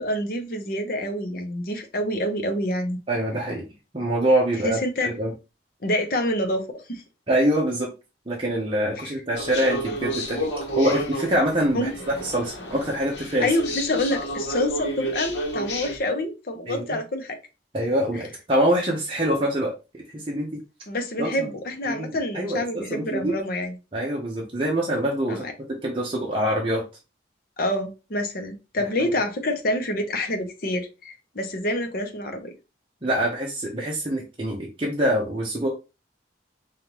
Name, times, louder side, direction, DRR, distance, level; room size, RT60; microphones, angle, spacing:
voice 1, 0.0-3.0 4.6-5.1 5.8-7.0 9.0-9.1 11.7-11.9 13.4-17.4 18.1-18.2 20.9-23.7 25.3-25.5 27.6-32.5, left 1 dB, 50° left, 0.8 m, -27 dB
voice 2, 3.1-3.7 3.9-5.3 7.3-7.9 8.3-10.5 10.7-13.5 16.7-17.0 17.7-20.6 21.2-21.5 21.9-23.3 23.9-26.8 29.0-29.1 33.0-35.7, right 1 dB, 30° right, 0.8 m, -25 dB
sound 1, 9.3-16.0, equal, 70° left, 1.1 m, -31 dB
5.2 x 2.5 x 3.0 m
head